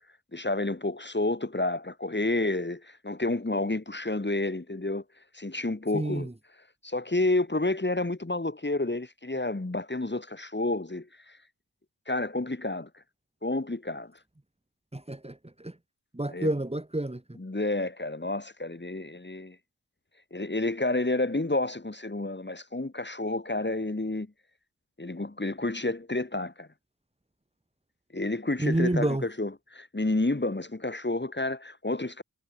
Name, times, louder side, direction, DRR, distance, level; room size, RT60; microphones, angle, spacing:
voice 1, 0.3-5.0 5.3-6.3 6.8-11.4 12.1-12.9 13.4-14.1 16.3-16.5 17.4-19.6 20.3-24.3 25.0-26.7 28.1-32.2, left 2 dB, 30° left, 4.6 m, -30 dB
voice 2, 5.9-6.3 14.9-15.7 16.1-17.2 28.6-29.2, right 1 dB, 15° right, 2.4 m, -29 dB
cardioid pair, 50°, 38 cm